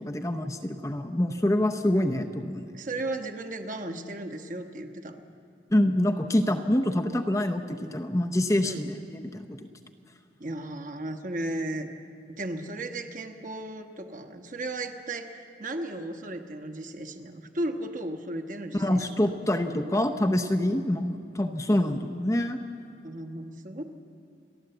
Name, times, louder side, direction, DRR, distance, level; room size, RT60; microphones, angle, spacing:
voice 1, 0.0-2.7 5.7-9.6 18.7-22.6, left 1 dB, 15° left, 5 dB, 0.7 m, -26 dB
voice 2, 2.7-5.2 8.6-8.8 10.4-11.9 12.4-19.2 23.0-23.8, right 1 dB, 45° right, 4 dB, 1.3 m, -35 dB
29.5 x 11.5 x 7.9 m, 2.4 s
head